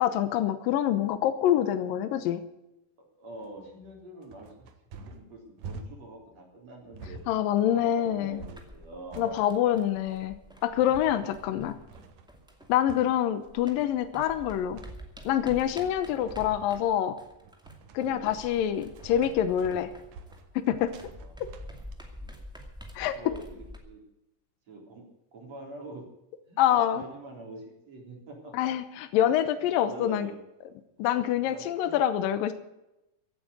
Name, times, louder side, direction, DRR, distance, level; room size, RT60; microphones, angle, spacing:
voice 1, 0.0-2.4 7.3-8.4 9.2-10.4 10.6-11.8 12.7-14.8 15.3-17.2 17.9-19.9 20.6-20.9 21.4-21.5 23.0-23.1 26.6-27.0 28.5-30.3 31.0-32.5, left 11 dB, 75° left, 11 dB, 2.6 m, -26 dB
voice 2, 3.0-4.7 5.1-7.2 7.6-9.5 11.6-11.8 18.0-18.4 21.2-21.6 22.2-22.4 23.1-24.0 24.7-25.0 25.3-26.0 26.5-28.7 29.1-29.3 29.6-30.4 31.0-31.1 31.3-32.0, right 1 dB, 45° right, 1 dB, 4.6 m, -45 dB
sound 1, 3.3-21.9, right 4 dB, 65° right, 2.8 m, -48 dB
sound 2, 8.3-13.2 13.5-23.8, equal, ahead, 1.4 m, -48 dB
16.5 x 8.8 x 8.1 m, 0.91 s
omnidirectional pair, 4.2 m